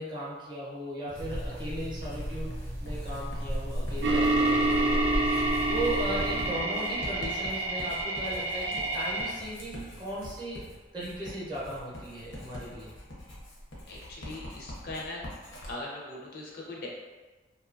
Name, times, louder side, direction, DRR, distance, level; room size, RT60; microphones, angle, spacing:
voice 1, 0.0-2.5 2.8-10.6 10.9-12.9, right 1 dB, 25° right, -7 dB, 0.6 m, -37 dB
Writing, 1.1-15.7, left 1 dB, 80° left, 0.7 m, -44 dB
sound 1, 1.2-6.5, equal, 85° right, 0.7 m, -34 dB
sound 2, 4.0-9.3, right 2 dB, 65° right, 0.3 m, -28 dB
voice 2, 13.9-15.2 15.7-16.9, left 2 dB, 50° left, -3 dB, 0.5 m, -40 dB
2.6 x 2.3 x 2.5 m, 1.3 s
head